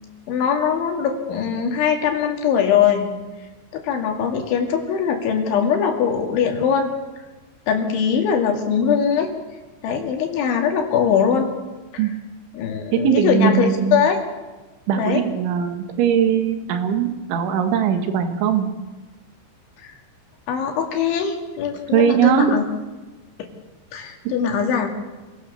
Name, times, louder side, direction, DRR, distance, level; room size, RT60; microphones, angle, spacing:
voice 1, 0.3-3.1 3.7-6.9 7.7-9.3 9.8-11.5 11.9-12.1 12.5-14.2 15.0-15.2 19.8-19.9 20.5-22.6 23.9-24.9, left 7 dB, 75° left, 3 dB, 4.8 m, -21 dB
voice 2, 12.9-14.1 14.9-18.7 21.9-22.5, right 8 dB, 80° right, 6 dB, 4.1 m, -20 dB
26.5 x 17.0 x 7.1 m, 1.2 s
omnidirectional pair, 5.4 m